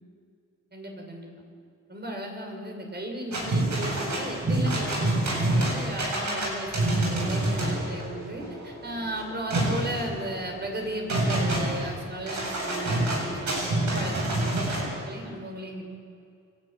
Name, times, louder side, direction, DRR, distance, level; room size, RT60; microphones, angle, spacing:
voice 1, 0.7-1.3 1.9-15.8, right 1 dB, 30° right, 2 dB, 6.2 m, -35 dB
sound 1, 3.3-14.8, right 1 dB, 65° right, 8.0 m, -27 dB
28.5 x 12.0 x 9.3 m, 2.3 s
cardioid pair, 70°, 31 cm